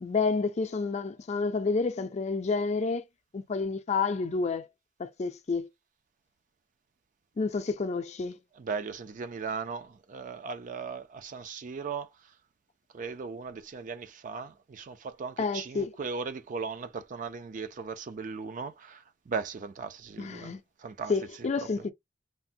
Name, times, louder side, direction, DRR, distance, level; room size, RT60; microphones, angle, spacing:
voice 1, 0.0-3.0 3.3-4.7 5.0-5.7 7.4-8.4 15.4-15.9 20.2-20.6 21.1-21.9, left 4 dB, 40° left, 0.4 m, -29 dB
voice 2, 8.5-12.1 12.9-21.8, right 5 dB, 45° right, 0.4 m, -38 dB
3.3 x 2.1 x 2.6 m
head